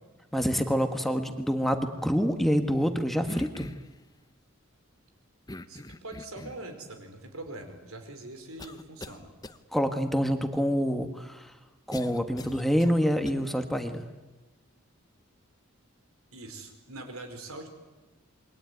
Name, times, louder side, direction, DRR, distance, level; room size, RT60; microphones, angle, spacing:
voice 1, 0.3-3.7 9.7-11.5 11.9-14.0, equal, ahead, 6 dB, 1.5 m, -27 dB
sound 1, 3.3-4.0 5.5-6.7 7.5-7.6 8.6-9.2 9.4-9.6 11.9-13.3, left 1 dB, 20° left, 0.9 m, -42 dB
voice 2, 5.7-9.3 16.3-17.7, right 2 dB, 90° right, 7 dB, 4.9 m, -43 dB
27.5 x 22.5 x 9.4 m, 1.2 s
head